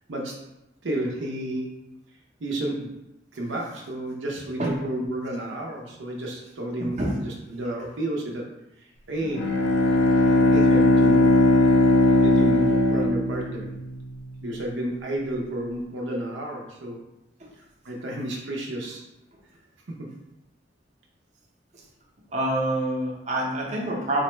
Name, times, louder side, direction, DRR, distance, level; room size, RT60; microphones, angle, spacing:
voice 1, 0.1-0.5 0.8-1.8 2.4-3.0 3.4-8.5 8.8-9.5 10.4-11.8 12.2-13.7 14.4-17.0 17.6-19.0 19.9-20.1, right 1 dB, 85° right, -1 dB, 0.6 m, -32 dB
voice 2, 6.8-7.1 22.3-24.2, right 1 dB, 40° right, -3 dB, 0.7 m, -26 dB
Bowed string instrument, 9.2-14.0, left 2 dB, 65° left, 0.4 m, -19 dB
4.1 x 2.1 x 3.0 m, 0.89 s
head